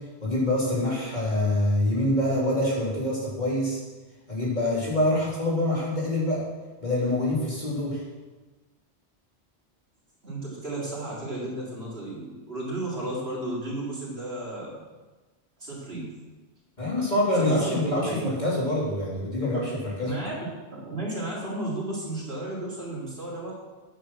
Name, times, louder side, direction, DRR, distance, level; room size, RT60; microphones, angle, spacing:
voice 1, 0.0-3.8 4.3-6.5 6.8-8.0 16.8-20.2, left 1 dB, 40° left, -6 dB, 3.5 m, -25 dB
voice 2, 10.2-14.8 15.6-16.1 17.3-17.8 18.1-18.3 20.0-20.3 20.6-23.5, right 1 dB, 65° right, -5 dB, 3.8 m, -33 dB
10.0 x 9.0 x 6.2 m, 1.2 s
omnidirectional pair, 1.1 m